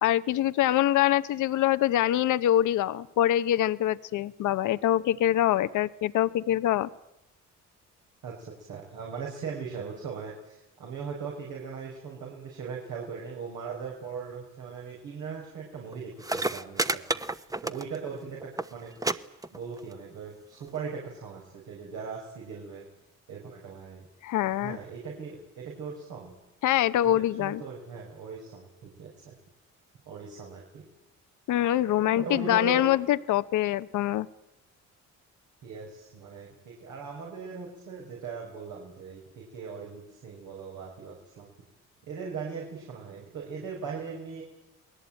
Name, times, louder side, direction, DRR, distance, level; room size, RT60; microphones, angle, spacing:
voice 1, 0.0-6.9 24.2-24.8 26.6-27.6 31.5-34.3, left 12 dB, 80° left, 13 dB, 0.9 m, -24 dB
voice 2, 8.2-17.2 17.6-18.9 19.5-22.9 23.3-24.1 24.6-26.3 27.4-29.3 30.1-30.8 32.0-32.9 35.6-41.5 42.1-44.4, right 5 dB, 80° right, -2 dB, 5.7 m, -39 dB
sound 1, 15.9-18.1 18.4-18.7 19.0-19.1 19.4-19.9 20.8-20.9, right 2 dB, 10° right, 1.0 m, -30 dB
29.0 x 20.0 x 9.1 m, 0.98 s
cardioid pair, 90°, 30 cm